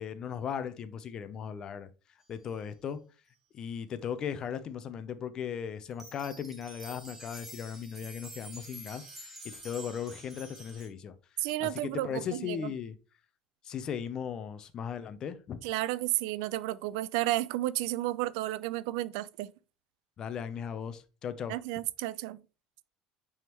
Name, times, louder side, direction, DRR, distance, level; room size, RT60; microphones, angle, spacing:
voice 1, 0.0-1.9 2.3-3.0 3.5-11.1 11.6-13.0 13.6-15.6 20.2-21.5, left 8 dB, 30° left, 0.5 m, -37 dB
sound 1, 5.9-10.9, right 1 dB, 10° right, 1.3 m, -48 dB
voice 2, 11.4-12.7 15.6-19.5 21.5-22.4, right 16 dB, 85° right, 0.4 m, -32 dB
9.1 x 3.5 x 2.9 m
cardioid pair, 170°, 2 cm